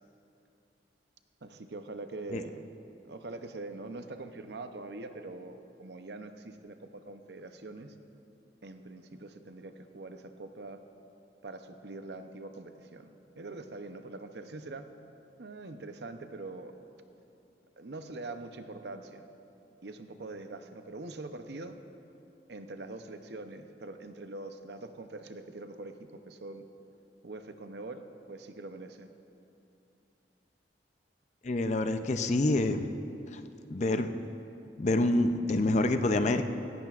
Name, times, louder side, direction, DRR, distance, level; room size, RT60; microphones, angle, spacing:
voice 1, 1.4-2.6 3.0-7.9 8.6-10.8 11.4-14.9 15.4-16.8 17.8-19.3 19.8-21.8 22.5-26.7 27.2-29.1, right 2 dB, 70° right, 8 dB, 0.7 m, -43 dB
voice 2, 31.4-32.8 33.3-33.4 33.7-34.1 34.8-36.4, left 2 dB, 40° left, 9 dB, 0.5 m, -27 dB
17.0 x 15.0 x 2.5 m, 2.7 s
head